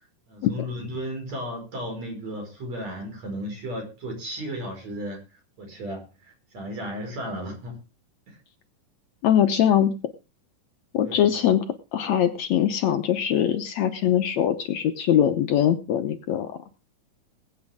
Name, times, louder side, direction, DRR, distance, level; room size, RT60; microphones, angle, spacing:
voice 1, 0.3-5.2 5.6-6.1 6.5-7.8 8.3-8.4 11.0-11.3, equal, 55° right, 2 dB, 6.5 m, -34 dB
voice 2, 9.2-9.9 10.9-11.6 11.9-16.6, left 10 dB, 70° left, 7 dB, 2.0 m, -22 dB
21.0 x 8.8 x 3.6 m, 0.31 s
omnidirectional pair, 3.7 m